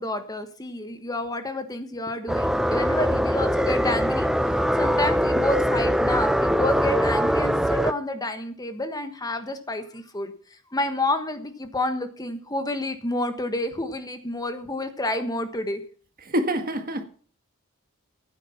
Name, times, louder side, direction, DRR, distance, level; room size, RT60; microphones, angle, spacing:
voice 1, 0.0-4.3 4.7-10.3 10.7-15.8, left 1 dB, 20° left, 1.3 m, -29 dB
sound 1, 2.3-7.9, equal, ahead, 0.5 m, -22 dB
voice 2, 16.3-17.0, equal, 45° right, 1.7 m, -25 dB
15.0 x 9.6 x 5.9 m
head